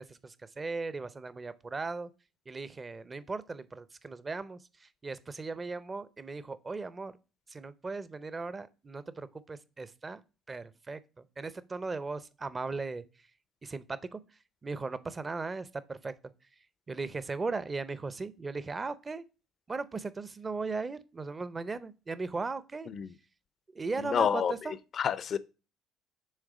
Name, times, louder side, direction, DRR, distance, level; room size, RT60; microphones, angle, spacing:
voice 1, 0.0-2.1 2.5-7.1 7.5-10.2 10.5-13.0 13.6-14.2 14.6-16.1 16.9-19.2 19.7-22.9 23.7-24.8, right 3 dB, 30° right, 0.6 m, -37 dB
voice 2, 24.0-24.5 25.0-25.4, left 7 dB, 50° left, 0.5 m, -28 dB
6.5 x 3.6 x 4.9 m
hypercardioid pair, 65°, 0 cm